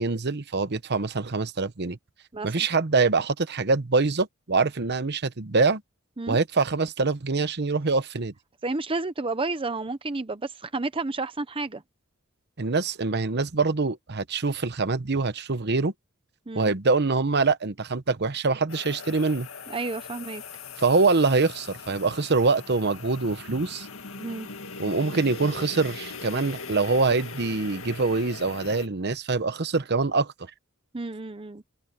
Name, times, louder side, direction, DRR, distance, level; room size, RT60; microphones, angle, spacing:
voice 1, 0.0-2.0 2.4-5.8 6.3-8.3 12.6-15.9 16.5-19.5 20.8-23.9 24.8-30.3, right 3 dB, 50° right, 1.0 m, -24 dB
voice 2, 2.3-2.7 6.2-6.4 8.6-11.8 16.5-16.7 19.7-20.4 24.2-24.5 30.9-31.6, right 3 dB, 25° right, 0.7 m, -31 dB
sound 1, 18.7-28.9, left 4 dB, 70° left, 2.2 m, -40 dB
head